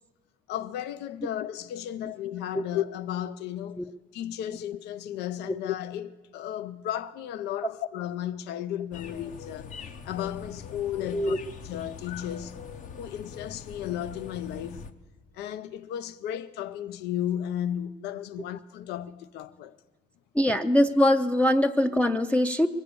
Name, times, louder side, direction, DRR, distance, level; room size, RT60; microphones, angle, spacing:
voice 1, 0.5-3.9 4.1-9.7 10.0-11.3 11.6-12.6 13.0-14.8 15.3-19.8, left 11 dB, 80° left, 0.5 m, -34 dB
sound 1, 8.9-14.9, left 6 dB, 50° left, 0.9 m, -42 dB
voice 2, 20.4-22.7, left 1 dB, 10° left, 0.5 m, -22 dB
22.5 x 8.3 x 6.8 m
cardioid pair, 110°, 17 cm